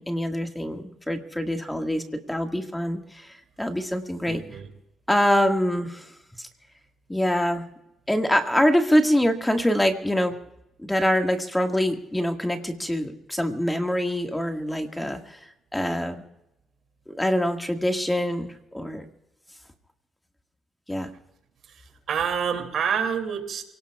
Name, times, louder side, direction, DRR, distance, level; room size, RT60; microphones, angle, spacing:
voice 1, 0.0-4.4 5.1-6.1 6.4-6.5 7.1-7.7 8.1-10.4 10.8-15.4 15.7-16.2 17.1-19.1 20.9-21.1, equal, 10° left, 4 dB, 1.9 m, -24 dB
voice 2, 4.3-4.7 21.7-23.6, right 7 dB, 65° right, 5 dB, 2.8 m, -28 dB
28.5 x 18.5 x 2.4 m, 0.87 s
cardioid pair, 90°, 0 cm